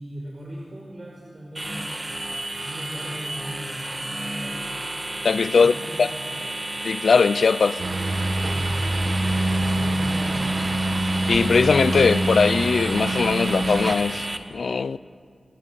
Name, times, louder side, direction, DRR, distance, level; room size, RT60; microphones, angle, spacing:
voice 1, 0.0-1.9 2.6-4.8 5.5-6.4 8.5-10.7, equal, 45° right, 5.0 m, -38 dB
sound 1, 1.5-14.4, right 1 dB, 25° right, 2.1 m, -32 dB
voice 2, 5.2-6.1 6.8-7.8 11.3-15.0, left 5 dB, 80° left, 0.6 m, -20 dB
sound 2, 7.8-13.9, right 1 dB, 60° right, 2.1 m, -25 dB
28.0 x 22.0 x 7.7 m
cardioid pair, 50°, 0 cm